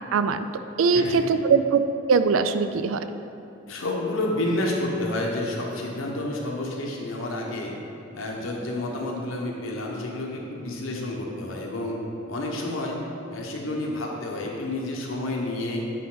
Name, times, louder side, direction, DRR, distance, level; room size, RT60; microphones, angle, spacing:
voice 1, 0.1-0.5 0.8-1.8 2.1-3.0, right 5 dB, 80° right, 11 dB, 0.4 m, -21 dB
voice 2, 0.9-1.2 3.7-7.8 8.1-12.0 12.3-13.0 13.3-15.8, left 1 dB, 85° left, -1 dB, 1.2 m, -29 dB
9.1 x 4.8 x 3.9 m, 2.7 s
head